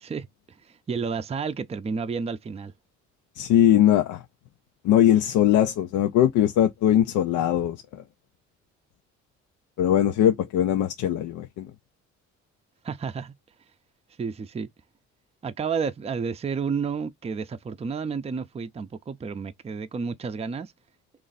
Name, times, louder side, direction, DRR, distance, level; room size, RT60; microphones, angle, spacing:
voice 1, 0.0-2.7 12.8-13.3 14.2-14.7 15.4-20.7, right 5 dB, 20° right, 0.4 m, -31 dB
voice 2, 3.4-4.2 4.8-8.0 9.8-11.7, left 11 dB, 90° left, 0.5 m, -21 dB
3.2 x 2.5 x 3.9 m
cardioid pair, 90°, 30 cm